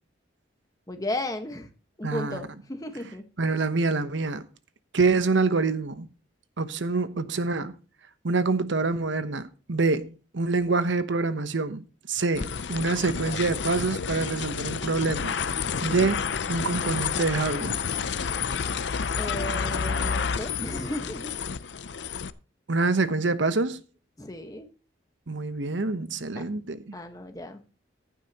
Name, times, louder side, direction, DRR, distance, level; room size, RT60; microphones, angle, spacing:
voice 1, 0.9-1.7 2.0-3.2 19.2-21.3 24.2-24.7 26.3-26.4 26.9-27.6, left 1 dB, 20° left, 1.3 m, -34 dB
voice 2, 2.0-2.4 3.4-4.5 4.9-6.1 6.6-7.7 8.2-15.4 15.8-17.8 22.7-23.8 25.3-27.0, right 3 dB, 70° right, 0.9 m, -26 dB
sound 1, 12.3-22.3, left 6 dB, 65° left, 0.6 m, -30 dB
15.0 x 11.0 x 2.9 m
head